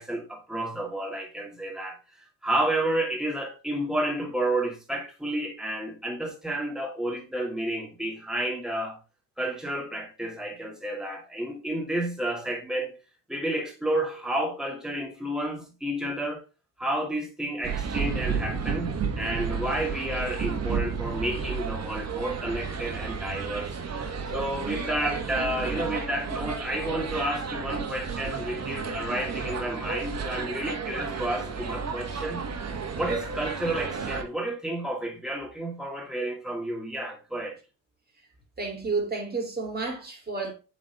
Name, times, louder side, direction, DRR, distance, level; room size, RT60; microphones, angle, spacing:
voice 1, 0.0-2.0 2.4-9.0 9.4-12.9 13.3-16.4 16.8-23.7 24.0-32.4 32.9-37.6, right 1 dB, ahead, 2.3 m, -31 dB
sound 1, 17.6-34.2, right 5 dB, 40° right, 1.4 m, -32 dB
voice 2, 38.6-40.5, right 4 dB, 25° right, 3.0 m, -31 dB
7.4 x 4.1 x 3.5 m
supercardioid pair, 90°, 41 cm